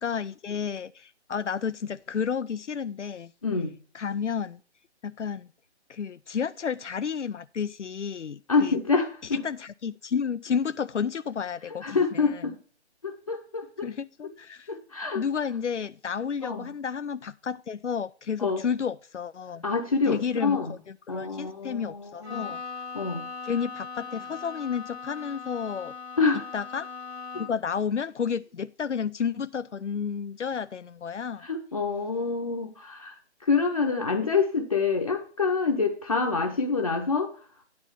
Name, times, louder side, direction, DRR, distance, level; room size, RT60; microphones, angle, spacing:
voice 1, 0.0-3.3 3.9-4.6 5.0-5.5 5.9-8.7 9.4-12.0 13.8-14.7 15.1-19.6 20.1-20.6 21.1-22.6 23.4-25.9 26.5-26.9 27.4-31.5, left 6 dB, 90° left, 0.5 m, -31 dB
voice 2, 3.4-3.7 8.5-9.4 11.8-12.6 13.0-13.9 14.7-15.2 16.4-16.7 18.4-18.6 19.6-20.8 21.1-22.6 22.9-23.2 26.2-26.4 31.4-37.6, left 4 dB, 30° left, 0.8 m, -27 dB
Bowed string instrument, 22.2-27.7, left 5 dB, 65° right, 1.7 m, -39 dB
10.5 x 4.0 x 7.0 m
figure-of-eight pair, 155°, 34 cm